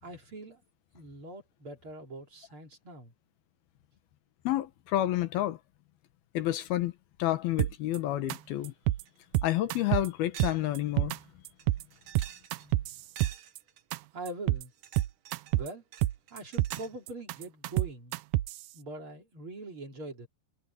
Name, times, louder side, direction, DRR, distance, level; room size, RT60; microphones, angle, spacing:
voice 1, 0.0-0.6 0.9-3.1 14.1-14.7 15.5-15.8 16.3-18.2 18.7-20.3, right 2 dB, 35° right, 3.6 m, -42 dB
voice 2, 4.4-5.6 6.3-6.9 7.2-8.7 9.4-11.2, left 14 dB, 80° left, 3.1 m, -29 dB
sound 1, 7.6-8.0 8.3-8.4 8.6-9.0 9.3-10.1 10.4-11.2 11.4-11.8 12.1-13.6 13.9-14.0 14.3-14.6 15.0-15.7 16.0-16.8 17.1-18.6, right 17 dB, 80° right, 2.0 m, -28 dB
sound 2, 9.1-9.2 9.6-9.7 10.3-10.7 11.0-11.1 11.6-12.7 13.2-13.8 14.6-15.6 15.9-17.0, right 9 dB, 60° right, 2.9 m, -48 dB
omnidirectional pair, 4.3 m